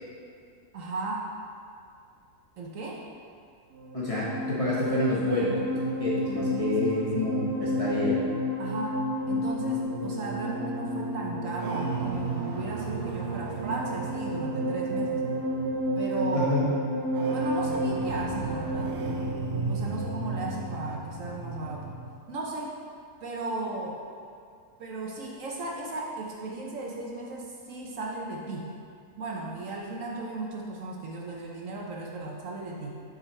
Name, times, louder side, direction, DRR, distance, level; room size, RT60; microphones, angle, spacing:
voice 1, 0.7-1.3 2.6-3.0 6.5-7.3 8.6-9.0 9.3-15.3 16.0-16.5 17.3-19.0 19.7-22.0 22.3-22.7 23.2-24.0 24.8-28.7 29.2-33.0, right 2 dB, 65° right, -2 dB, 1.0 m, -36 dB
sound 1, 3.7-22.2, equal, 90° right, 1.2 m, -31 dB
voice 2, 3.9-8.2 16.3-16.7, left 1 dB, 30° left, -8 dB, 0.7 m, -28 dB
7.1 x 3.9 x 4.3 m, 2.3 s
omnidirectional pair, 1.6 m